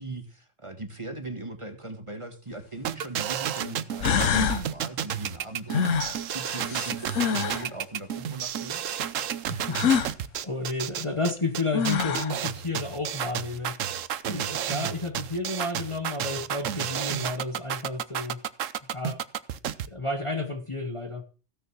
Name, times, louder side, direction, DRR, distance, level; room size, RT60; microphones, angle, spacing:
voice 1, 0.0-5.9 6.3-8.8 14.2-14.5, right 2 dB, 25° right, 1.7 m, -39 dB
sound 1, 2.5-2.6 3.6-3.7 4.0-4.6 5.7-7.7 9.7-10.1 11.4-11.5 11.7-12.4, left 7 dB, 85° left, 1.3 m, -26 dB
sound 2, 2.9-19.9, right 10 dB, 90° right, 1.1 m, -31 dB
voice 2, 9.5-13.8 14.2-18.4 18.9-19.2 19.9-21.2, left 2 dB, 25° left, 1.1 m, -32 dB
15.5 x 6.6 x 6.2 m
omnidirectional pair, 1.3 m